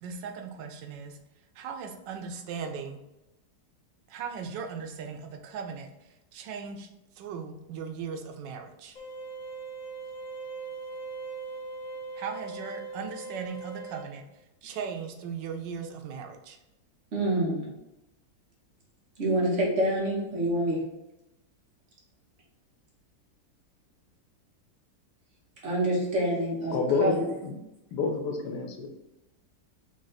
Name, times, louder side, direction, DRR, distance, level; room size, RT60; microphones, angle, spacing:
voice 1, 0.0-1.2 1.6-3.0 4.1-5.9 6.3-6.9 7.2-9.0 12.2-14.2 14.6-16.6, right 6 dB, 80° right, 5 dB, 1.3 m, -38 dB
sound 1, 9.0-14.0, right 3 dB, 55° left, 1.1 m, -40 dB
voice 2, 17.1-17.7 19.2-20.8 25.6-26.7 27.0-27.3, right 1 dB, 45° right, -3 dB, 1.4 m, -26 dB
voice 3, 26.7-27.1 27.4-27.5 27.9-28.9, left 4 dB, 75° left, 4 dB, 1.3 m, -28 dB
3.9 x 3.3 x 4.0 m, 0.93 s
omnidirectional pair, 1.9 m